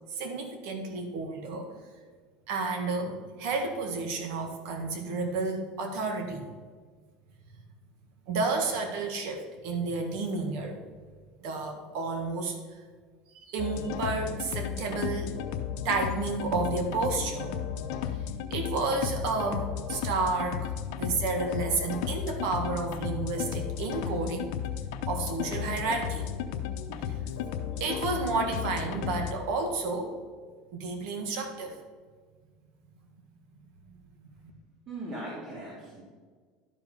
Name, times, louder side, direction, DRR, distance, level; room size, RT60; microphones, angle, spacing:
voice 1, 0.1-1.7 2.5-6.4 8.3-10.8 11.4-12.6 13.4-15.3 15.8-17.8 18.5-24.5 25.1-26.3 27.8-30.2 30.7-31.8 33.9-34.0 34.4-34.5, right 3 dB, 70° right, 4 dB, 1.7 m, -31 dB
sound 1, 13.6-29.3, left 8 dB, 80° left, 0.7 m, -34 dB
voice 2, 34.9-36.0, right 1 dB, 30° right, -5 dB, 2.4 m, -39 dB
11.5 x 5.2 x 5.4 m, 1.5 s
cardioid pair, 155°, 3 cm